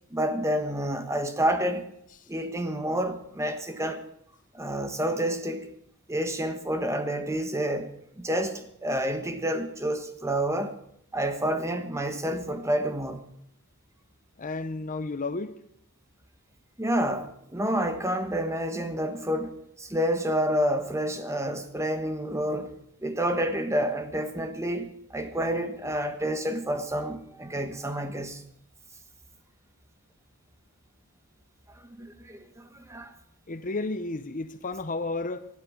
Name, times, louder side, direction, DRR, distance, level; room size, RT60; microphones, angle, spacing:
voice 1, 0.1-1.9 2.3-4.0 4.5-5.7 6.1-7.9 8.2-10.7 11.1-13.3 16.8-19.5 19.8-22.7 23.0-28.4 32.0-32.4 32.9-33.1, equal, 15° right, 1.3 m, -29 dB
voice 2, 14.4-15.6 33.5-35.5, left 3 dB, 35° left, 0.8 m, -32 dB
19.5 x 12.0 x 5.1 m
head